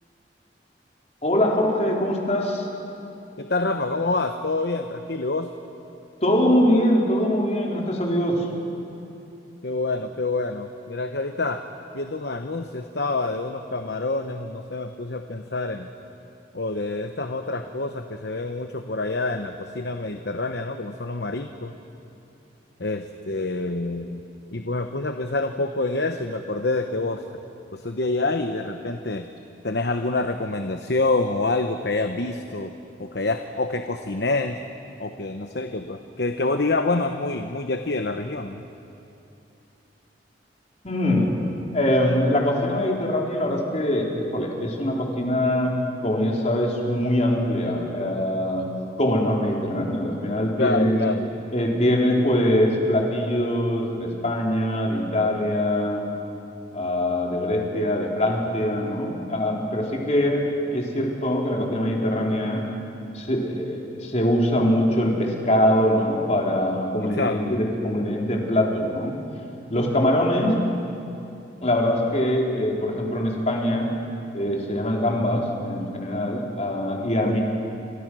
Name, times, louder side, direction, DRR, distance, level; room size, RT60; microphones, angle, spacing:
voice 1, 1.2-2.7 6.2-8.4 40.8-41.4 41.7-45.8 46.0-48.7 49.0-51.0 51.5-56.1 56.7-62.6 63.1-69.2 69.7-70.6 71.6-73.9 74.3-77.4, left 1 dB, 40° left, -1 dB, 4.0 m, -23 dB
voice 2, 3.4-5.5 9.6-11.6 11.9-15.9 16.5-21.7 22.8-24.2 24.5-27.2 27.7-29.3 29.6-32.7 33.0-34.6 35.0-38.6 50.6-51.3 67.1-67.6 69.8-70.1 77.2-77.4, left 2 dB, 65° left, 6 dB, 1.0 m, -27 dB
30.0 x 26.0 x 6.3 m, 2.8 s
head